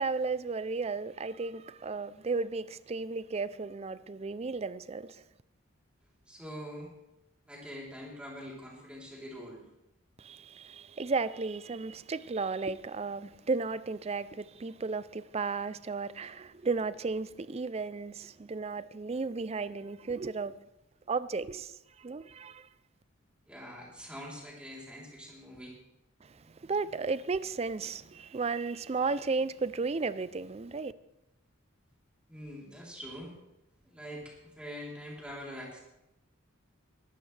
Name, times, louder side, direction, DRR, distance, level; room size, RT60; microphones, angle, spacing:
voice 1, 0.0-5.2 10.2-20.6 21.1-22.7 26.2-30.9, right 4 dB, 30° right, 0.4 m, -34 dB
voice 2, 6.3-6.9 7.5-9.6 23.5-25.7 32.3-33.3 33.8-35.8, equal, 5° right, 3.4 m, -44 dB
21.5 x 12.0 x 3.3 m
head